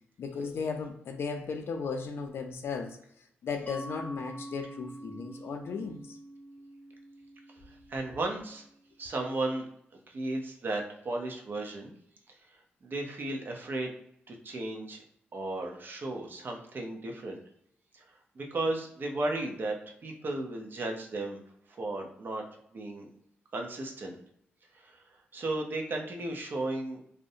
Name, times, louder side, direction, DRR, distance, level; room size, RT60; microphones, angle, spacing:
voice 1, 0.2-3.0 3.4-6.2, left 5 dB, 70° left, 0.4 m, -36 dB
Mallet percussion, 3.7-9.0, right 1 dB, 30° left, 0.7 m, -46 dB
voice 2, 7.7-8.6 9.0-9.7 10.1-11.9 12.8-13.9 14.3-15.0 15.3-17.4 17.9-18.0 18.4-19.8 20.0-21.4 21.7-22.4 22.7-23.1 23.5-24.2 24.7-25.0 25.3-27.0, right 2 dB, 55° right, 0.6 m, -34 dB
2.4 x 2.1 x 2.7 m
cardioid pair, 70°, 4 cm